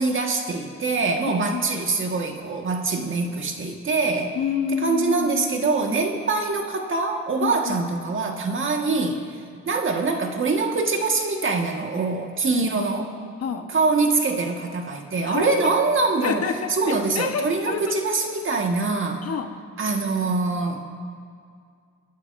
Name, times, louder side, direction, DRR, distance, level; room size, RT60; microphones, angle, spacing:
voice 1, 0.0-4.3 4.8-9.4 9.7-13.1 13.7-16.4 16.7-19.2 19.8-20.9, right 3 dB, 40° right, 3 dB, 1.6 m, -24 dB
voice 2, 1.2-1.6 4.3-6.1 7.4-7.8 12.6-12.7 13.4-13.7 15.3-15.6 16.2-18.0 19.2-19.5, left 6 dB, 55° left, 5 dB, 1.1 m, -28 dB
29.0 x 11.5 x 2.6 m, 2.2 s
cardioid pair, 90°, 30 cm